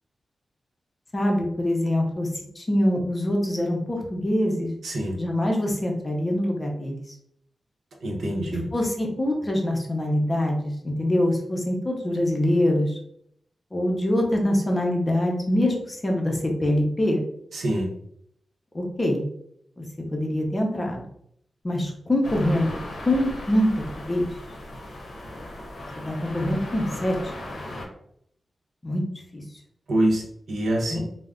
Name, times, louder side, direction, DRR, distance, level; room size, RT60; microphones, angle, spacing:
voice 1, 1.1-2.3 2.6-4.7 5.2-7.0 8.5-13.0 13.7-17.2 18.7-19.2 19.8-19.9 20.1-21.0 21.6-22.7 23.1-24.3 26.0-27.2 28.8-29.0 29.3-29.4 30.9-31.0, left 1 dB, 25° left, 0 dB, 0.6 m, -24 dB
voice 2, 4.8-5.2 8.0-8.7 17.5-17.9 29.9-30.2 30.5-31.0, right 1 dB, 85° right, -1 dB, 0.7 m, -25 dB
sound 1, 22.2-27.9, left 1 dB, 65° left, 0.6 m, -37 dB
2.3 x 2.0 x 3.5 m, 0.71 s
wide cardioid pair, 130°, 0 cm